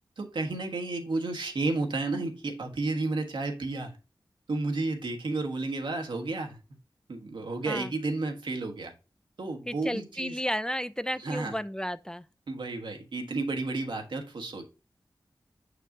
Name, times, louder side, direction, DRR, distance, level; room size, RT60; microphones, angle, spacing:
voice 1, 0.2-4.0 4.5-6.6 7.1-8.9 9.4-10.4 11.2-11.6 12.5-14.6, right 3 dB, 85° right, 1.4 m, -32 dB
voice 2, 9.7-12.2, equal, 10° left, 0.4 m, -33 dB
6.6 x 6.3 x 2.6 m
wide cardioid pair, 75°, 8 cm